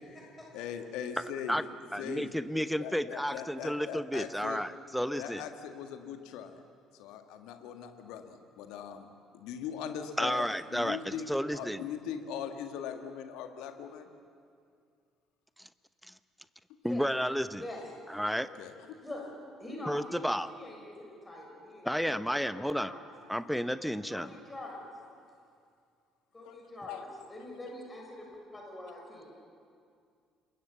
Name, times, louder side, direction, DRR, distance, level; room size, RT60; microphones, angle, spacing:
voice 1, 0.1-1.6 2.0-4.6 5.2-6.6 6.9-9.1 9.3-14.1 18.6-19.0 26.4-26.6 26.9-27.0, left 8 dB, 60° left, 6 dB, 1.8 m, -41 dB
voice 2, 1.9-5.4 10.2-11.8 16.8-17.6 18.1-18.5 19.9-20.5 21.8-22.9 23.3-24.3, equal, ahead, 13 dB, 1.0 m, -32 dB
voice 3, 17.6-18.2 19.0-19.3 19.6-23.0 24.1-24.9 26.3-29.3, left 1 dB, 20° left, -1 dB, 6.8 m, -45 dB
27.5 x 22.0 x 7.1 m, 2.3 s
figure-of-eight pair, 50°, 0 cm